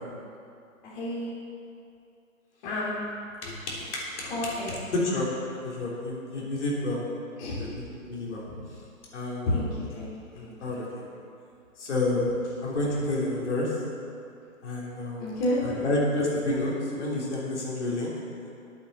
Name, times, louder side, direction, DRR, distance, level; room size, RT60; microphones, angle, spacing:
voice 1, 0.8-1.3 2.6-2.9 4.3-4.8 7.4-7.6 8.4-8.6 9.5-10.8 15.2-15.8, left 1 dB, 35° left, -7 dB, 3.0 m, -31 dB
voice 2, 3.4-4.5 4.9-5.3 5.6-7.0 7.5-8.4 9.1-9.6 10.3-11.0 11.8-12.3 12.6-13.7 14.6-15.3 15.6-18.1, left 2 dB, 55° left, -5 dB, 3.4 m, -29 dB
10.0 x 8.0 x 7.8 m, 2.5 s
hypercardioid pair, 155°, 42 cm